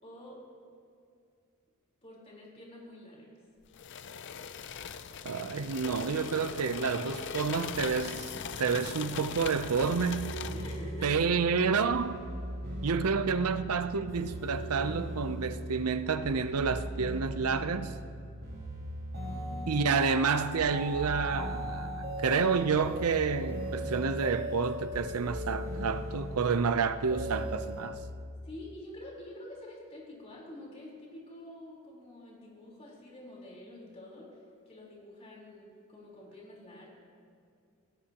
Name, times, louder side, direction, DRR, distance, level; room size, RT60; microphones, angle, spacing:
voice 1, 0.0-0.4 2.0-3.3 10.5-11.3 19.3-19.7 28.4-34.4 34.7-36.9, left 1 dB, 30° left, 4.1 m, -47 dB
sound 1, 3.7-10.9, left 7 dB, 55° left, 0.5 m, -40 dB
voice 2, 5.2-8.3 8.6-10.3 11.0-12.2 12.8-17.9 19.7-21.9 22.2-28.0, right 5 dB, 90° right, 0.6 m, -29 dB
sound 2, 9.0-27.9, equal, 45° right, 5.0 m, -38 dB
26.0 x 17.5 x 3.0 m
head